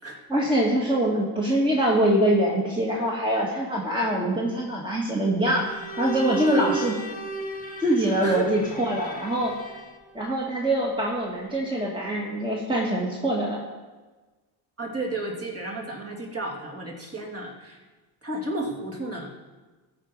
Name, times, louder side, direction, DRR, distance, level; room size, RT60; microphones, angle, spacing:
voice 1, 0.3-5.7 6.0-6.9 7.8-9.8 10.1-13.6, right 1 dB, 10° right, -3 dB, 2.1 m, -24 dB
Bowed string instrument, 5.6-10.1, right 3 dB, 15° left, 1.8 m, -36 dB
voice 2, 6.3-7.2 8.0-8.4 14.8-17.8 18.2-19.3, right 1 dB, 30° right, -2 dB, 3.0 m, -31 dB
14.0 x 4.8 x 5.6 m, 1.3 s
supercardioid pair, 70°, 50 cm